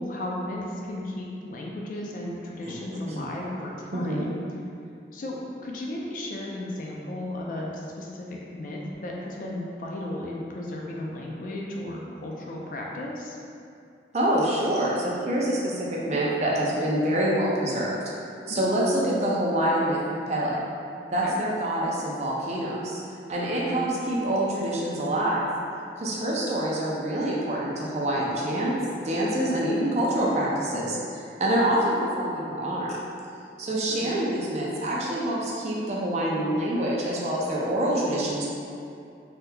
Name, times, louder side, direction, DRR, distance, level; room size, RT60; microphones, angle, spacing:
voice 1, 0.0-4.3 5.1-5.4 5.6-13.4 18.5-18.7 21.2-21.4 23.6-23.8 33.9-34.1, left 1 dB, 45° left, -2 dB, 0.3 m, -35 dB
voice 2, 3.9-4.3 14.1-18.0 18.5-20.0 20.3-20.6 21.1-23.0 23.3-25.5 26.0-28.8 29.0-31.0 31.4-33.0 33.6-38.5, right 1 dB, 35° right, -5 dB, 0.4 m, -26 dB
3.5 x 2.8 x 2.2 m, 2.5 s
head